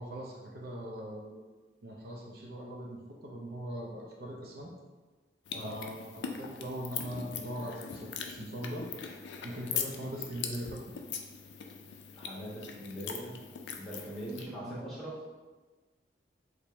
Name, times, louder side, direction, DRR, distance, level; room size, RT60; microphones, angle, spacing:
voice 1, 0.0-1.4 1.8-4.7 5.6-8.9 9.4-10.9 14.6-14.9, equal, 55° right, -1 dB, 0.4 m, -41 dB
sound 1, 5.5-14.4, left 6 dB, 80° left, 0.4 m, -41 dB
voice 2, 12.2-13.4 13.8-15.2, right 1 dB, ahead, -9 dB, 1.1 m, -41 dB
4.4 x 2.0 x 3.3 m, 1.3 s
head